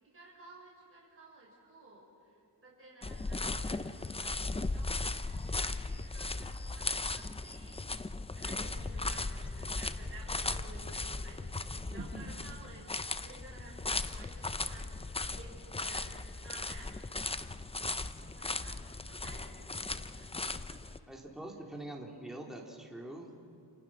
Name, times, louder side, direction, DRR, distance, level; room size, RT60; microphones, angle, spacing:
voice 1, 0.0-8.0 8.3-11.4 11.7-12.9 13.2-14.9 15.2-16.1 16.4-16.9 18.2-19.4 20.2-21.0, right 2 dB, 30° right, -4 dB, 5.7 m, -54 dB
sound 1, 3.0-21.0, left 3 dB, 15° left, 0.5 m, -37 dB
voice 2, 11.9-12.3 21.1-23.4, right 1 dB, ahead, -1 dB, 3.0 m, -44 dB
28.5 x 28.0 x 6.0 m, 2.5 s
wide cardioid pair, 130°, 43 cm